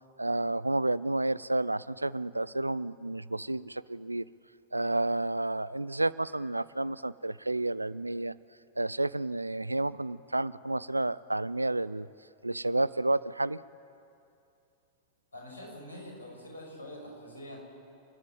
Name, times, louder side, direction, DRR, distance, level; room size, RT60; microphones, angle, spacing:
voice 1, 0.2-4.2 4.7-8.3 8.8-12.1 12.4-13.6, right 2 dB, 85° right, 19 dB, 0.4 m, -30 dB
voice 2, 15.3-17.6, left 1 dB, 75° left, -1 dB, 6.0 m, -45 dB
29.0 x 10.5 x 9.1 m, 2.6 s
figure-of-eight pair, 90°, 0 cm